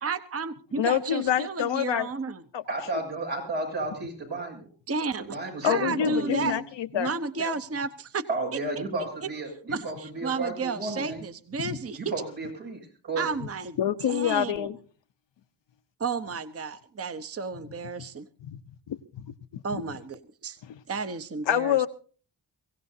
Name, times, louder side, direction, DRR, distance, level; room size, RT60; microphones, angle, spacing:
voice 1, 0.0-2.4 4.9-6.6 6.9-8.6 9.2-9.3 9.7-12.0 13.2-14.7 16.0-18.3 19.6-20.6 20.9-21.8, right 4 dB, 35° right, 0.8 m, -32 dB
voice 2, 0.8-2.1 2.5-2.6 2.9-3.0 5.6-7.1 7.4-7.5 11.6-11.8 13.8-14.8 18.4-18.6 18.9-19.3 19.7-19.8 21.5-21.9, left 10 dB, 80° left, 0.9 m, -27 dB
voice 3, 2.7-4.7 5.2-6.6 8.3-11.2 12.1-13.3, right 2 dB, 90° right, 7.2 m, -33 dB
23.5 x 16.0 x 2.7 m
cardioid pair, 60°, 43 cm